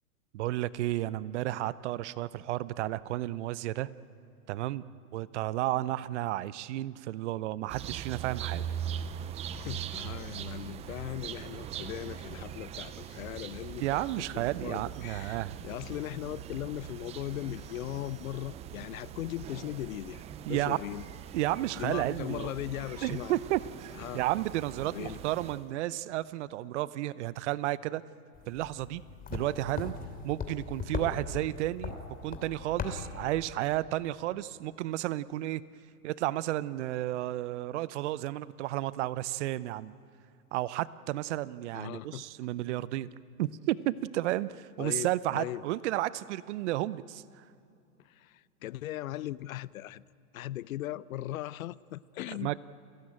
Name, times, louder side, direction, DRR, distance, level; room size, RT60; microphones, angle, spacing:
voice 1, 0.3-3.9 4.5-4.8 5.1-8.6 13.8-15.6 20.5-20.8 21.3-22.5 23.0-28.0 28.5-29.0 29.3-29.9 30.2-32.0 32.2-35.6 36.0-39.9 40.5-43.1 43.4-47.2 52.4-52.6, right 15 dB, 50° right, 0.8 m, -32 dB
sound 1, 7.7-25.7, right 9 dB, 15° right, 0.5 m, -41 dB
voice 2, 9.5-20.2 20.5-21.0 21.8-23.3 23.9-24.2 24.9-25.2 41.7-42.2 44.8-45.6 48.0-50.0 50.3-52.5, left 14 dB, 65° left, 0.7 m, -39 dB
sound 2, 28.3-33.5, left 5 dB, 20° left, 3.1 m, -39 dB
29.5 x 16.5 x 8.8 m
hypercardioid pair, 125°, 45 cm